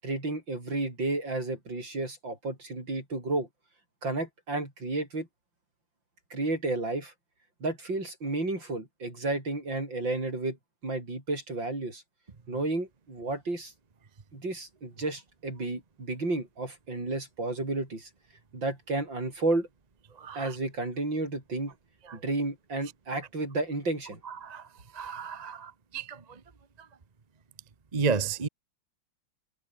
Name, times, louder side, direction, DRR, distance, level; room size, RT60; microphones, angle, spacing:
voice 1, 0.0-3.5 4.0-5.3 6.3-7.1 7.6-10.6 10.8-12.0 12.5-13.7 14.3-18.1 18.5-19.7 20.3-21.7 22.1-24.2, right 2 dB, 55° right, 8.0 m, -32 dB
voice 2, 20.2-20.5 22.1-22.2 24.4-24.6 24.9-26.2 27.9-28.5, right 5 dB, 30° right, 0.9 m, -31 dB
omnidirectional pair, 2.4 m